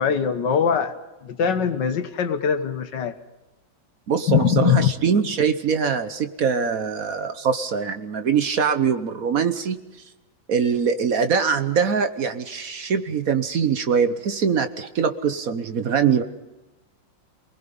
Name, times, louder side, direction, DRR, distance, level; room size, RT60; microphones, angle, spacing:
voice 1, 0.0-3.2 4.3-4.9, left 7 dB, 70° left, 9 dB, 1.8 m, -22 dB
voice 2, 4.1-9.8 10.5-16.2, right 6 dB, 55° right, 10 dB, 1.3 m, -23 dB
27.5 x 20.0 x 5.3 m, 1.0 s
omnidirectional pair, 2.0 m